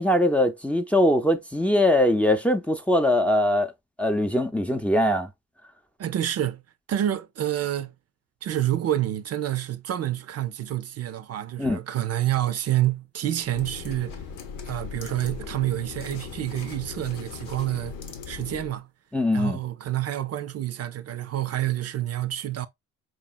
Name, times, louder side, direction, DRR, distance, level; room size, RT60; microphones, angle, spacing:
voice 1, 0.0-3.7 4.0-5.3 11.6-11.8 19.1-19.6, left 1 dB, 5° left, 0.5 m, -22 dB
voice 2, 6.0-6.6 6.9-7.9 8.4-14.2 14.7-18.0 18.3-18.9 19.3-22.7, right 12 dB, 55° right, 0.6 m, -28 dB
sound 1, 13.4-18.8, left 6 dB, 85° left, 0.9 m, -39 dB
4.9 x 2.9 x 2.3 m
cardioid pair, 90°, 30 cm